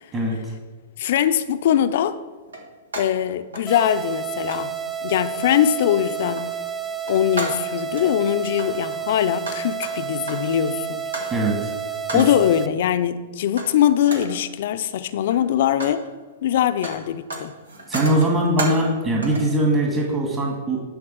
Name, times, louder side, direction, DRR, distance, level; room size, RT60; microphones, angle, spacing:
voice 1, 0.1-0.5 11.3-11.7 12.1-12.2 17.9-20.8, right 1 dB, 25° right, -2 dB, 1.9 m, -21 dB
voice 2, 1.0-2.2 3.0-4.7 5.0-6.5 7.1-11.1 12.1-16.0 16.4-17.5, left 10 dB, 60° left, 11 dB, 0.5 m, -21 dB
sound 1, 1.2-1.4 2.5-3.2 3.5-4.2 4.5-4.7 5.3-5.6 6.0-6.5 6.9-8.1 8.5-10.6 11.1-11.4 12.1-12.5 13.6-13.8 14.0-14.4 15.1-16.0 16.3-19.0 19.2-19.6, right 2 dB, 85° right, 1.7 m, -34 dB
sound 2, 3.7-12.7, right 8 dB, 5° right, 0.6 m, -30 dB
10.5 x 3.6 x 6.2 m, 1.4 s
hypercardioid pair, 115°, 0 cm